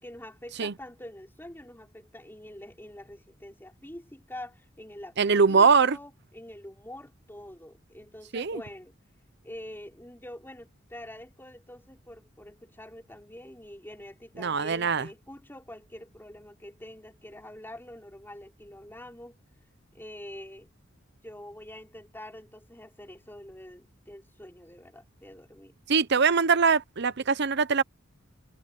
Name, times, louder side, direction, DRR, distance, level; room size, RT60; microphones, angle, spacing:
voice 1, 0.0-8.9 9.4-19.4 19.9-20.7 21.2-25.7, left 1 dB, 10° left, 5.6 m, -45 dB
voice 2, 5.2-6.0 8.3-8.6 14.4-15.1 25.9-27.8, right 5 dB, 60° right, 0.8 m, -22 dB
head